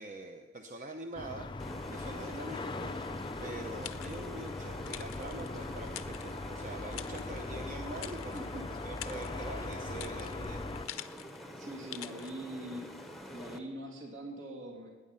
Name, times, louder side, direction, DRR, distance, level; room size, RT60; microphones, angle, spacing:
voice 1, 0.0-1.5 1.9-3.1 3.4-10.7, right 1 dB, 35° right, 4 dB, 0.7 m, -44 dB
sound 1, 1.2-10.9, left 2 dB, 25° left, 0.5 m, -40 dB
sound 2, 1.6-13.6, equal, ahead, 0.9 m, -46 dB
sound 3, 3.2-4.5 4.9-6.6 6.9-7.5 7.9-8.5 8.8-11.4 11.9-12.3, left 12 dB, 85° left, 0.6 m, -46 dB
voice 2, 8.3-8.6 11.6-12.9 13.3-14.9, right 1 dB, 65° right, -2 dB, 2.8 m, -43 dB
19.5 x 9.7 x 5.6 m, 1.3 s
head